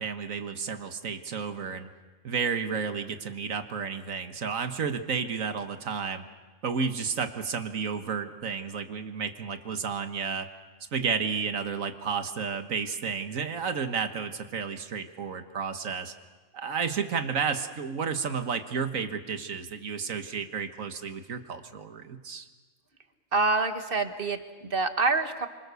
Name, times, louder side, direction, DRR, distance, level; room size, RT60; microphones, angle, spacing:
voice 1, 0.0-1.9 2.2-6.2 6.6-10.5 10.9-16.1 16.5-22.5, right 6 dB, 85° right, 8 dB, 1.7 m, -32 dB
voice 2, 23.3-25.5, right 3 dB, 45° right, 8 dB, 1.6 m, -26 dB
28.0 x 25.5 x 6.9 m, 1.3 s
omnidirectional pair, 1.4 m